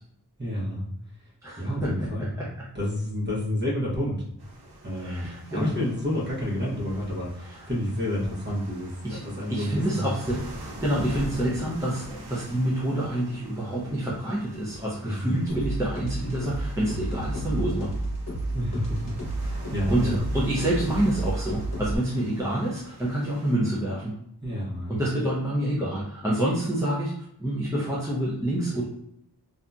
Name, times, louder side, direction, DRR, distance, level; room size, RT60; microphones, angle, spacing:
voice 1, 0.4-0.8 1.6-2.3 2.7-4.2 4.8-8.9 9.2-10.1 15.0-15.4 18.5-19.1 19.4-20.2 24.4-25.0, left 1 dB, 25° right, -6 dB, 1.0 m, -29 dB
voice 2, 1.4-1.9 2.4-2.5 5.0-5.7 7.5-7.6 9.0-10.4 10.8-17.9 19.9-24.1 24.9-27.1 27.4-28.8, right 1 dB, 10° right, -6 dB, 0.5 m, -27 dB
sound 1, 4.4-23.5, equal, 75° right, 0.8 m, -43 dB
sound 2, 15.5-22.0, right 1 dB, 40° left, 1.1 m, -31 dB
2.7 x 2.5 x 2.3 m, 0.76 s
wide cardioid pair, 80°, 39 cm